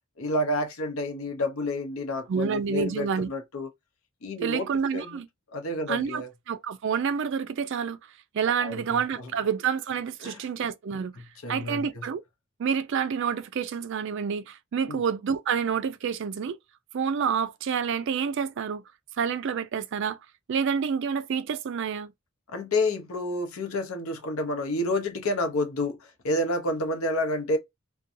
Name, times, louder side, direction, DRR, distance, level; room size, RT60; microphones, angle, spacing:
voice 1, 0.2-3.7 4.2-5.2 5.5-6.3 8.6-9.3 10.2-10.4 11.2-12.1 14.9-15.0 22.5-27.6, left 1 dB, 75° left, 0.7 m, -29 dB
voice 2, 2.3-3.3 4.4-5.3 5.9-8.0 8.3-11.2 11.5-12.2 12.6-16.6 16.9-18.8 19.2-20.2 20.5-22.1, right 6 dB, 60° right, 0.3 m, -28 dB
2.6 x 2.2 x 2.5 m
head